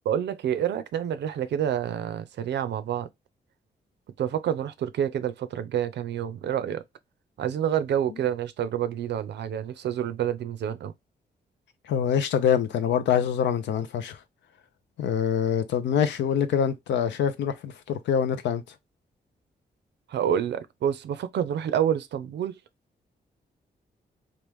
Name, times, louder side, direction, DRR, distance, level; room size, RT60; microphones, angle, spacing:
voice 1, 0.0-3.1 4.2-6.8 7.4-10.9 20.1-22.6, right 9 dB, 75° right, 0.5 m, -28 dB
voice 2, 11.9-14.2 15.0-18.6, left 8 dB, 85° left, 0.5 m, -25 dB
3.0 x 2.4 x 3.3 m
cardioid pair, 60°, 18 cm